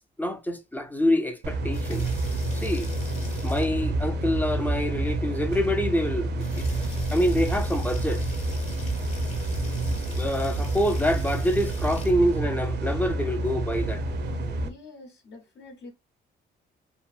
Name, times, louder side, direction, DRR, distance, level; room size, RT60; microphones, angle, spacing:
voice 1, 0.2-2.1 2.5-3.0 3.4-6.7 7.1-8.3 10.2-14.0, equal, 10° left, 0.4 m, -26 dB
sound 1, 1.4-14.7, right 2 dB, 60° right, 0.6 m, -28 dB
sound 2, 1.6-4.0 5.3-5.4 5.8-5.9 6.3-12.2 13.8-14.4, left 3 dB, 35° left, 1.0 m, -46 dB
voice 2, 14.6-15.9, left 2 dB, 60° left, 0.9 m, -46 dB
2.8 x 2.6 x 2.3 m
cardioid pair, 90°, 20 cm